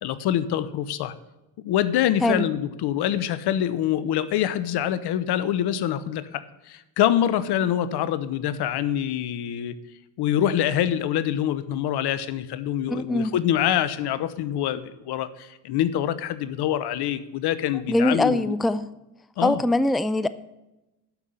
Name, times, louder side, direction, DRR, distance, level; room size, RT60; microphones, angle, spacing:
voice 1, 0.0-1.1 1.6-9.8 10.2-18.5 19.4-19.6, left 11 dB, 65° left, 15 dB, 1.0 m, -25 dB
voice 2, 12.9-13.3 17.9-18.8 19.4-20.3, left 1 dB, ahead, 14 dB, 0.5 m, -22 dB
12.0 x 5.7 x 8.0 m, 0.97 s
supercardioid pair, 65°, 42 cm